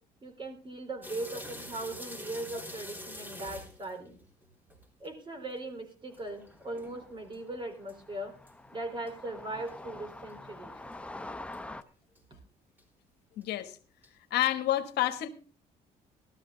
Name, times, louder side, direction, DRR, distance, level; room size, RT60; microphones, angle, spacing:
voice 1, 0.2-4.2 5.0-8.3 8.7-10.7, right 2 dB, 30° right, 6 dB, 3.9 m, -39 dB
sound 1, 1.0-5.1 5.5-5.6 6.1-7.4 7.9-8.0 8.5-8.6 9.1-9.2 9.7-9.8 10.3-10.4 10.9-11.0 11.5-11.6 12.1-12.2 12.8-12.9 13.4-13.5 14.0-14.1, left 1 dB, 10° right, 3.5 m, -45 dB
sound 2, 6.3-11.8, left 2 dB, 5° left, 0.7 m, -46 dB
voice 2, 13.4-13.8 14.3-15.3, left 14 dB, 75° left, 9 dB, 1.3 m, -29 dB
15.0 x 13.0 x 3.9 m, 0.37 s
cardioid pair, 110°, 17 cm